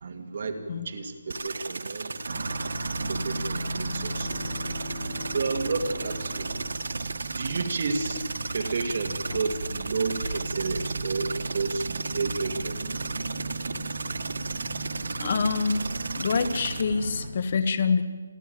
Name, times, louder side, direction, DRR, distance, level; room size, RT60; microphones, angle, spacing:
voice 1, 0.0-4.6 5.3-6.5 7.4-8.2 8.5-12.8, right 4 dB, 45° right, 6 dB, 2.2 m, -31 dB
sound 1, 1.3-16.8, right 3 dB, 85° right, 1.3 m, -35 dB
sound 2, 2.3-17.3, right 2 dB, 60° right, 3.3 m, -36 dB
sound 3, 3.7-7.8, right 1 dB, 10° left, 2.2 m, -42 dB
voice 2, 15.2-15.9 16.2-18.0, left 5 dB, 35° left, 12 dB, 1.1 m, -26 dB
28.5 x 12.0 x 9.0 m, 1.5 s
hypercardioid pair, 175°, 0 cm